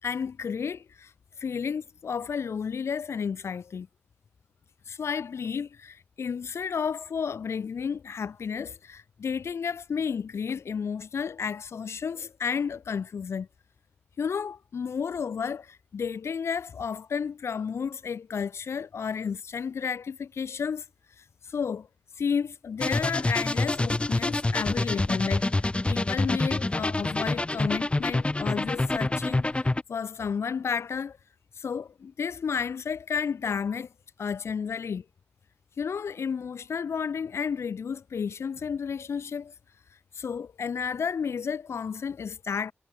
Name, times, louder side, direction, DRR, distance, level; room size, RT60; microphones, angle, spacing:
voice 1, 0.0-1.1 1.4-3.9 4.9-13.5 14.2-20.8 21.4-21.9 22.2-25.5 25.9-31.2 31.6-33.9 34.2-35.0 35.8-39.5 40.1-42.7, left 6 dB, 75° left, 5.0 m, -32 dB
sound 1, 22.8-29.8, left 2 dB, 25° left, 1.6 m, -27 dB
cardioid pair, 60°, 5 cm